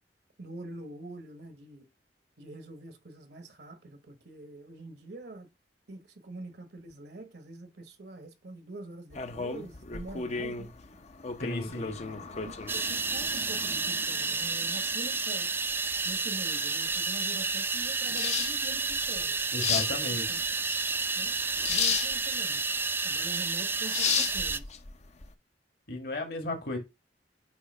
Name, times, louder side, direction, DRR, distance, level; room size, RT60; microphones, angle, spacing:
voice 1, 0.4-1.9 2.4-5.5 5.9-10.7 11.7-15.5 16.0-19.4 20.1-20.4 21.1-21.3 21.7-22.6 23.0-24.8, right 2 dB, 65° right, 1.1 m, -45 dB
sound 1, 9.1-25.3, left 6 dB, 40° left, 0.6 m, -35 dB
voice 2, 11.4-12.0 19.5-20.4 25.9-26.8, left 2 dB, 60° left, 1.8 m, -34 dB
sound 2, 12.7-24.6, right 4 dB, 10° right, 0.3 m, -30 dB
8.3 x 2.8 x 5.3 m
head